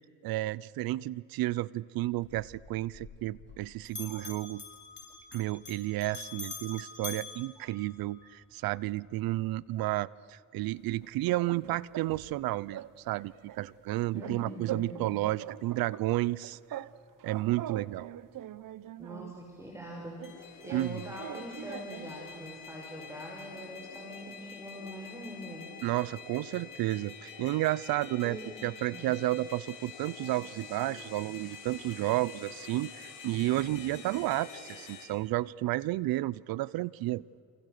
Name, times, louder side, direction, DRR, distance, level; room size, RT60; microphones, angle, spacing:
voice 1, 0.2-4.6 5.3-12.8 13.1-16.8 17.2-18.1 20.7-21.0 25.8-37.2, right 17 dB, 85° right, 22 dB, 0.6 m, -32 dB
Bell, 2.2-3.6 3.9-8.3, left 5 dB, 30° left, 7.1 m, -45 dB
sound 1, 11.0-12.4 12.7-12.9 13.2-15.1 15.4-16.9 17.2-19.4 20.2-22.2, right 12 dB, 65° right, 1.0 m, -43 dB
voice 2, 14.1-15.1 19.0-20.2 20.6-25.7 28.2-28.5 28.9-29.1 33.8-33.9, equal, 10° right, 0 dB, 5.6 m, -43 dB
sound 2, 20.2-35.0, left 6 dB, 65° left, 6.7 m, -47 dB
29.5 x 28.0 x 6.7 m, 2.4 s
cardioid pair, 80°, 34 cm